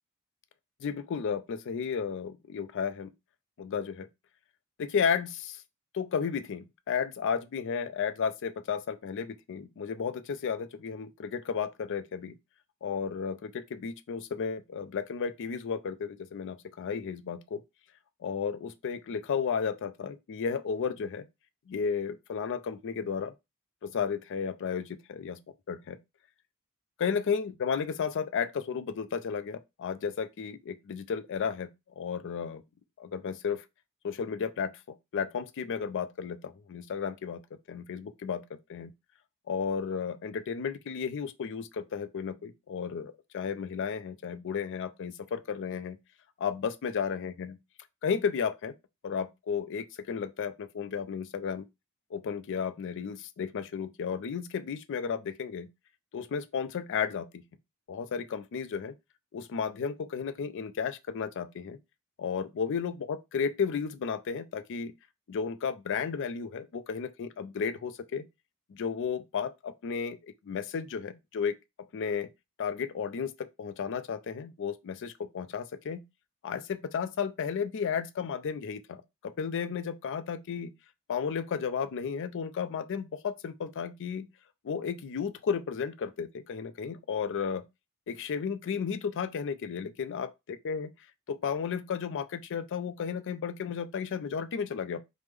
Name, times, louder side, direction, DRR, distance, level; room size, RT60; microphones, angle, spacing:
voice 1, 0.8-3.1 3.6-4.1 4.8-5.6 5.9-12.3 12.8-17.6 18.2-21.3 21.7-23.3 23.8-25.4 25.7-26.0 27.0-31.7 32.0-32.6 33.0-33.6 34.0-37.4 37.7-38.4 38.7-38.9 39.5-46.0 46.4-47.6 48.0-48.7 49.0-51.7 52.1-55.7 56.1-57.4 57.9-58.9 59.3-61.8 62.2-64.9 65.3-68.3 68.7-70.2 70.5-71.5 71.9-72.3 72.6-76.0 76.4-80.7 81.1-84.3 84.6-87.6 88.1-90.9 91.3-95.0, left 6 dB, 60° left, 0.4 m, -33 dB
3.2 x 2.1 x 3.4 m
head